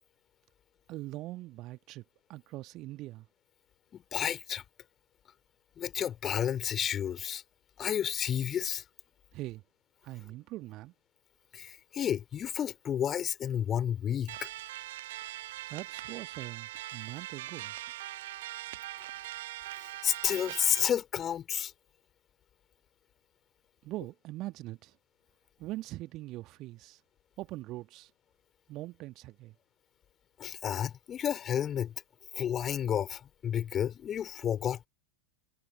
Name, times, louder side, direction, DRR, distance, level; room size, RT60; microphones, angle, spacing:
voice 1, 0.9-2.0 2.3-3.3 9.3-9.6 10.0-10.9 15.7-17.7 23.8-24.9 25.6-27.0 27.4-28.1 28.7-29.5, right 17 dB, 35° right, 1.5 m, -42 dB
voice 2, 3.9-4.6 5.8-7.4 7.8-8.8 11.5-14.5 19.8-21.7 30.4-31.9 32.3-34.9, left 9 dB, 25° left, 3.1 m, -31 dB
sound 1, 14.3-20.8, right 16 dB, 55° right, 0.7 m, -41 dB
figure-of-eight pair, 90°, 0 cm